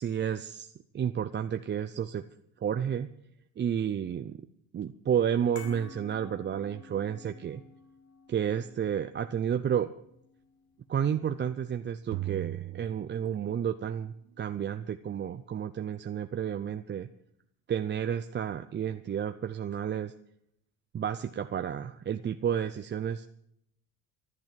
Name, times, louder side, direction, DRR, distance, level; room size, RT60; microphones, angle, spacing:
voice 1, 0.0-2.2 2.6-3.1 3.6-4.4 4.7-7.6 8.3-9.9 10.9-17.1 17.7-20.1 20.9-23.3, right 8 dB, 25° right, 8 dB, 0.6 m, -31 dB
sound 1, 5.6-12.0 12.2-12.4, left 4 dB, 75° left, 5.6 m, -52 dB
sound 2, 12.1-13.9, right 16 dB, 85° right, 0.8 m, -38 dB
13.5 x 12.0 x 7.6 m, 0.73 s
cardioid pair, 120°, 42 cm